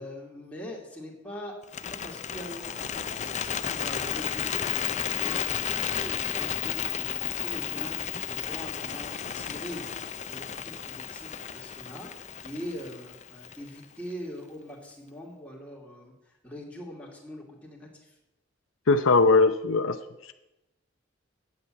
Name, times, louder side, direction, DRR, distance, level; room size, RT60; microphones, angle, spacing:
voice 1, 0.0-9.8 10.2-18.2, equal, 5° left, -2 dB, 2.6 m, -42 dB
Bird, 1.6-13.8, left 8 dB, 35° left, 0.5 m, -33 dB
voice 2, 18.9-20.0, left 3 dB, 75° left, 9 dB, 0.7 m, -20 dB
8.5 x 7.8 x 8.8 m, 0.94 s
head